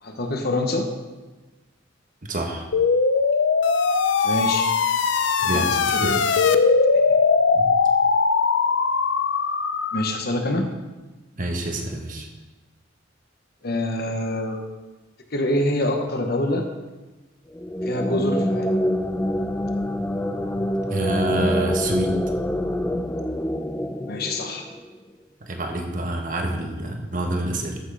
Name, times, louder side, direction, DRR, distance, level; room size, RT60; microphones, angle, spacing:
voice 1, 0.0-0.9 4.2-4.7 5.4-6.2 9.9-10.7 13.6-14.6 15.3-16.7 17.8-18.7 24.1-24.7, left 1 dB, 55° left, 4 dB, 1.2 m, -25 dB
voice 2, 2.3-2.7 5.4-5.7 6.0-6.1 7.5-7.7 11.4-12.3 20.9-22.2 25.4-27.8, right 1 dB, 45° right, 3 dB, 1.4 m, -27 dB
sound 1, 2.7-10.2, left 5 dB, 70° left, 0.6 m, -20 dB
sound 2, 17.5-25.0, equal, 10° left, 0.4 m, -26 dB
13.5 x 6.4 x 4.9 m, 1.2 s
head